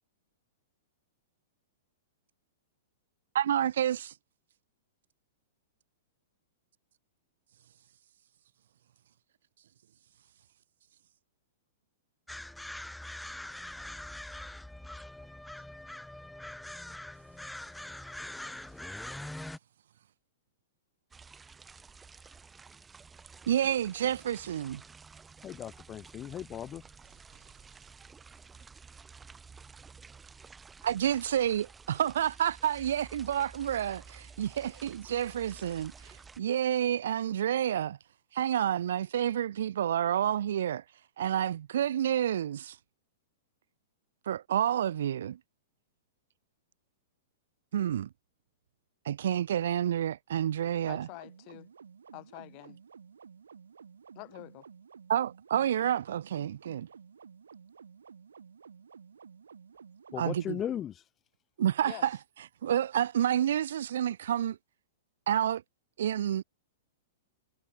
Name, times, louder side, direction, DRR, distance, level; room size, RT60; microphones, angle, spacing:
voice 1, 3.3-4.1 23.5-24.8 30.8-38.0 38.3-40.8 41.2-42.8 44.3-45.4 47.7-48.1 49.1-51.1 55.1-56.9 60.2-60.6 61.6-62.2 62.6-64.6 65.3-65.6 66.0-66.4, right 10 dB, 70° right, 0.5 m, -29 dB
sound 1, 12.3-19.6, left 1 dB, 5° left, 3.6 m, -43 dB
sound 2, 21.1-36.4, right 5 dB, 15° right, 4.7 m, -52 dB
voice 2, 25.4-26.8 60.1-61.1, left 10 dB, 25° left, 0.5 m, -37 dB
sound 3, 50.8-60.8, right 6 dB, 90° right, 3.5 m, -53 dB
voice 3, 50.9-51.7 52.1-52.8 54.1-54.7 61.8-62.1, left 32 dB, 45° left, 4.8 m, -46 dB
hypercardioid pair, 125°, 0 cm